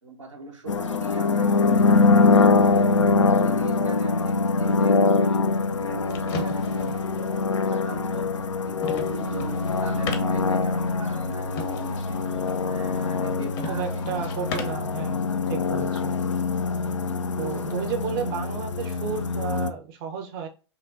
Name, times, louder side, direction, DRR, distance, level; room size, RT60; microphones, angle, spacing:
voice 1, 0.0-2.9 3.3-8.3 8.6-12.2 12.7-15.7, right 3 dB, 85° right, 1.1 m, -41 dB
sound 1, 0.7-19.7, left 4 dB, 85° left, 0.4 m, -23 dB
sound 2, 5.7-14.9, left 3 dB, 40° left, 0.8 m, -39 dB
voice 2, 13.7-16.2 17.4-20.5, right 7 dB, 50° right, 0.6 m, -32 dB
5.7 x 2.2 x 2.4 m
figure-of-eight pair, 95°, 15 cm